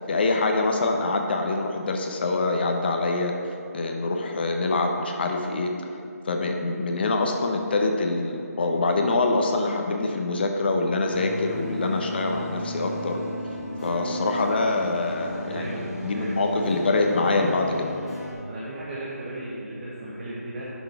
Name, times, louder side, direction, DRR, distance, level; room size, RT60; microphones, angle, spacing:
voice 1, 0.1-3.4 3.7-5.7 6.2-13.2 13.8-17.9, left 3 dB, 40° left, 3 dB, 0.9 m, -25 dB
sound 1, 11.0-18.3, equal, ahead, 1.3 m, -34 dB
voice 2, 15.5-16.4 18.5-20.7, right 1 dB, 35° right, -9 dB, 1.6 m, -35 dB
10.5 x 6.3 x 4.7 m, 2.5 s
figure-of-eight pair, 160°, 9 cm